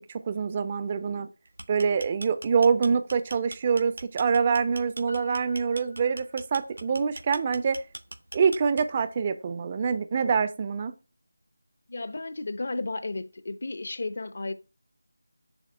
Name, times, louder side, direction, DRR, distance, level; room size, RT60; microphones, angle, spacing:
voice 1, 0.1-1.3 1.7-7.8 8.3-10.9, right 6 dB, 25° right, 0.3 m, -25 dB
sound 1, 1.5-9.1, right 1 dB, 75° right, 0.6 m, -41 dB
Piano, 5.1-6.9 7.2-7.3, left 1 dB, 70° left, 1.6 m, -48 dB
voice 2, 11.9-14.5, left 2 dB, 45° left, 0.5 m, -33 dB
7.0 x 2.6 x 5.2 m
figure-of-eight pair, 165°, 0 cm